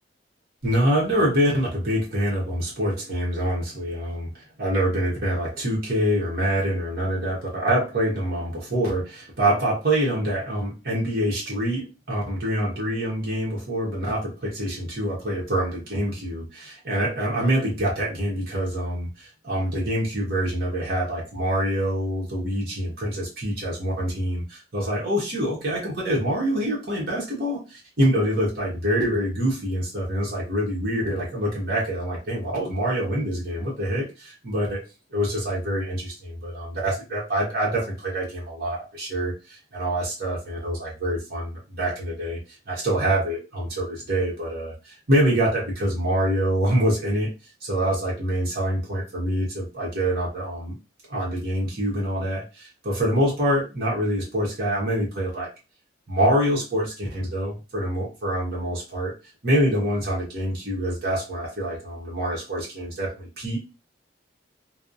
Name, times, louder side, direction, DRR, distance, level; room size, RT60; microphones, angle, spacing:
voice 1, 0.6-34.8 35.1-42.4 42.7-47.3 47.6-50.8 51.1-55.5 56.1-59.1 59.4-63.6, right 1 dB, 55° right, -4 dB, 1.0 m, -25 dB
3.1 x 2.0 x 2.5 m, 0.29 s
head